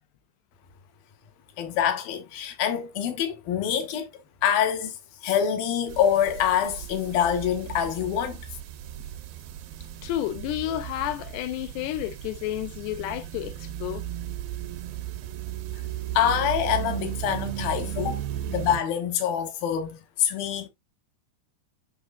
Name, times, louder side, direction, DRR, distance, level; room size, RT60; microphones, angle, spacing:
voice 1, 1.6-4.1 4.4-8.5 16.1-20.7, left 9 dB, 60° left, 3.0 m, -26 dB
sound 1, 5.9-18.8, right 12 dB, 85° right, 2.1 m, -35 dB
voice 2, 10.0-14.0, left 13 dB, 80° left, 2.6 m, -31 dB
10.0 x 5.7 x 2.4 m
omnidirectional pair, 5.3 m